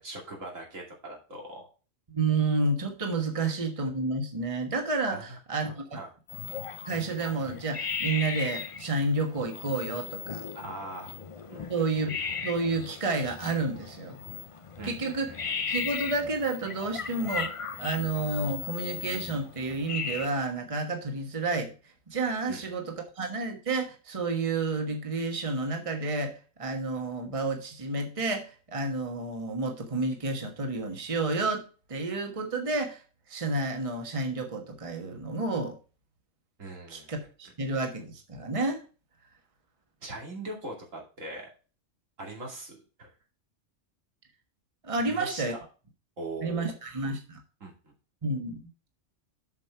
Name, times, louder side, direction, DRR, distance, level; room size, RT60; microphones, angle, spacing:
voice 1, 0.0-1.7 3.3-3.5 5.1-5.2 5.6-6.1 10.5-11.1 11.5-11.9 14.8-15.4 22.5-22.6 36.6-37.1 40.0-41.5 42.2-43.1 45.0-45.6 46.2-46.7 47.6-47.9, right 2 dB, 85° right, 0 dB, 2.9 m, -41 dB
voice 2, 2.1-5.8 6.9-10.5 11.7-12.1 12.4-14.2 14.8-15.3 15.7-17.5 17.8-21.7 22.1-33.0 33.3-35.7 36.9-38.8 44.8-45.5 46.4-47.4 48.2-48.6, right 3 dB, 25° right, 3 dB, 1.4 m, -30 dB
sound 1, 6.3-20.3, left 5 dB, 40° left, 0.5 m, -37 dB
7.5 x 6.4 x 4.5 m, 0.36 s
omnidirectional pair, 1.3 m